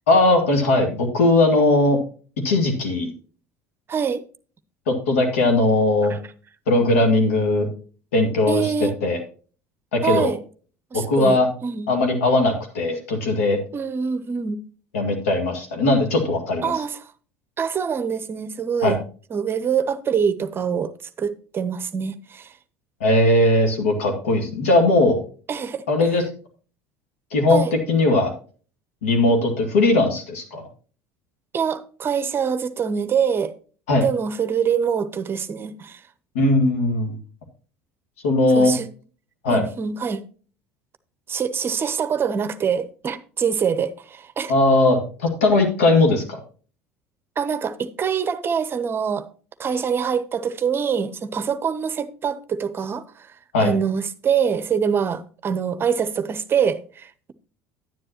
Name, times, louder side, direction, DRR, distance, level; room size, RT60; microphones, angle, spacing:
voice 1, 0.1-2.0 2.4-3.1 4.9-6.1 6.7-7.7 8.1-9.2 9.9-10.3 10.9-11.5 11.9-13.6 14.9-16.7 18.8-19.0 23.0-25.2 25.9-26.2 27.3-28.3 29.0-30.6 33.9-34.0 36.3-37.2 38.2-38.7 39.4-39.6 44.5-46.4 53.5-53.7, left 2 dB, 75° left, 2.0 m, -19 dB
voice 2, 3.9-4.2 6.1-6.2 8.5-8.9 10.0-10.4 10.9-11.9 13.7-14.6 16.6-17.1 17.6-19.0 19.3-20.9 21.2-22.5 25.5-25.8 27.5-27.7 31.5-33.5 34.0-36.0 38.5-38.9 39.5-40.2 41.3-44.5 47.4-49.3 49.6-53.3 53.6-57.3, right 7 dB, 30° right, 0.7 m, -24 dB
10.0 x 9.9 x 2.9 m
figure-of-eight pair, 65°, 7 cm